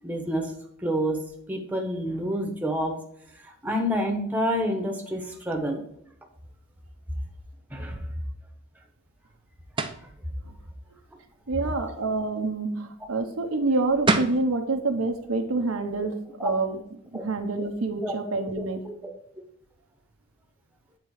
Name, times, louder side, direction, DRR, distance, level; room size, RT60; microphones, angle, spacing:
voice 1, 0.0-0.5 0.8-1.2 1.5-3.0 3.4-5.8 7.7-8.1 16.4-16.5 17.1-17.2 18.0-18.1 18.6-18.9, equal, 10° right, 2 dB, 1.0 m, -28 dB
sound 1, 9.8-10.1 13.7-13.8 14.1-14.4, right 3 dB, 25° right, 0.5 m, -24 dB
voice 2, 11.5-16.8 17.1-18.8, right 3 dB, 85° right, 5 dB, 0.9 m, -27 dB
8.6 x 3.7 x 4.8 m, 0.74 s
head